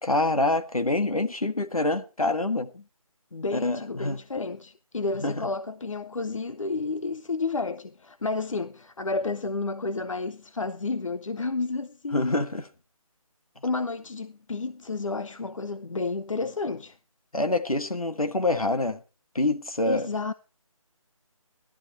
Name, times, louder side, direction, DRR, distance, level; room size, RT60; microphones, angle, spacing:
voice 1, 0.0-2.7 3.5-4.2 5.2-5.5 12.1-12.6 17.3-19.0 19.3-20.1, left 2 dB, 80° left, 1.6 m, -26 dB
voice 2, 3.3-12.4 13.6-17.0 19.9-20.3, left 3 dB, 60° left, 0.7 m, -31 dB
14.0 x 12.5 x 4.3 m
figure-of-eight pair, 155°, 18 cm